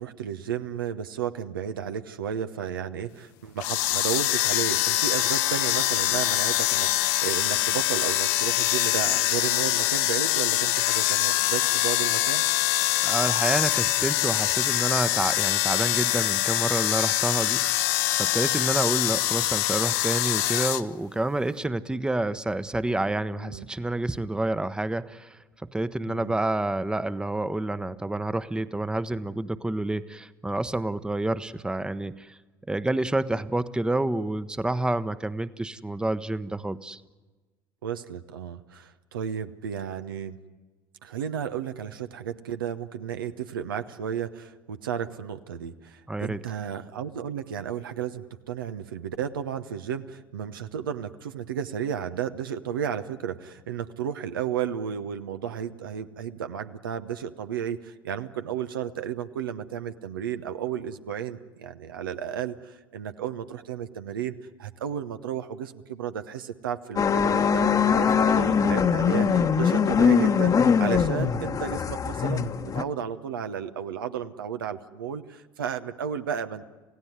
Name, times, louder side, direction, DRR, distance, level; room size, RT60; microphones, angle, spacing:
voice 1, 0.0-12.4 23.3-23.7 26.1-26.4 37.8-40.4 41.0-76.7, right 8 dB, 80° right, 9 dB, 1.0 m, -33 dB
sound 1, 3.6-20.8, left 16 dB, 65° left, 0.8 m, -24 dB
voice 2, 13.0-17.7 18.1-32.4 32.7-37.0 46.1-46.4, right 2 dB, 5° right, 14 dB, 0.9 m, -28 dB
sound 2, 67.0-72.8, left 6 dB, 30° left, 1.2 m, -22 dB
28.5 x 16.5 x 9.4 m, 1.3 s
hypercardioid pair, 70°, 11 cm